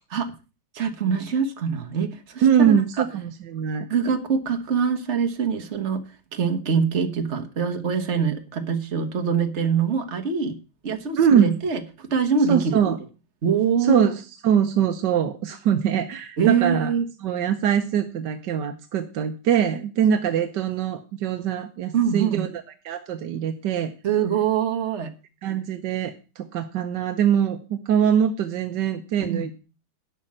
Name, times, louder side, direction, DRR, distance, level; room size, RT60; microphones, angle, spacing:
voice 1, 0.7-3.0 3.9-6.0 6.3-10.6 10.8-12.8 13.4-14.1 16.4-17.0 21.9-22.4 24.0-25.1 29.3-29.5, right 6 dB, 40° right, 6 dB, 1.6 m, -24 dB
voice 2, 2.4-3.9 11.2-11.5 12.5-13.0 13.8-16.9 17.2-23.9 25.4-29.5, right 8 dB, 65° right, 6 dB, 1.4 m, -23 dB
12.0 x 5.6 x 8.7 m, 0.33 s
omnidirectional pair, 2.1 m